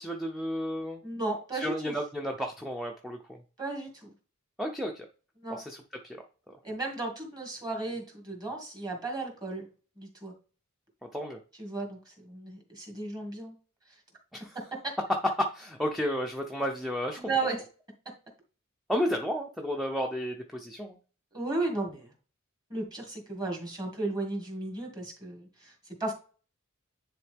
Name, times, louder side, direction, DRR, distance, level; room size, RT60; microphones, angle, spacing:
voice 1, 0.0-1.0 1.5-3.4 4.6-5.1 5.7-5.8 11.1-11.4 14.3-14.5 15.4-17.2 18.9-21.0, equal, ahead, 2 dB, 0.6 m, -32 dB
voice 2, 1.0-2.0 3.6-4.1 5.4-5.6 6.6-9.7 10.0-10.3 11.6-13.5 17.2-17.6 21.3-22.1 22.7-25.7 26.0-26.1, right 2 dB, 20° right, 1 dB, 2.1 m, -34 dB
10.0 x 3.8 x 3.5 m, 0.38 s
head